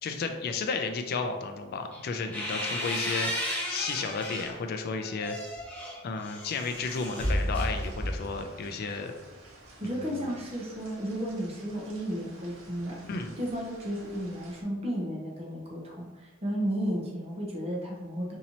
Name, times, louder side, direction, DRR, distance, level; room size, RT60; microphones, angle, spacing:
voice 1, 0.0-3.3 3.7-5.4 6.0-9.1 9.8-10.3 13.1-13.3, left 4 dB, 50° left, 6 dB, 0.3 m, -33 dB
sound 1, 1.9-4.6 5.0-8.4, equal, 5° left, 1.1 m, -33 dB
sound 2, 6.7-14.6, right 1 dB, 80° right, 0.8 m, -52 dB
voice 2, 9.8-13.0 13.4-18.4, equal, 30° right, -2 dB, 0.8 m, -33 dB
4.1 x 2.7 x 2.9 m, 1.2 s
head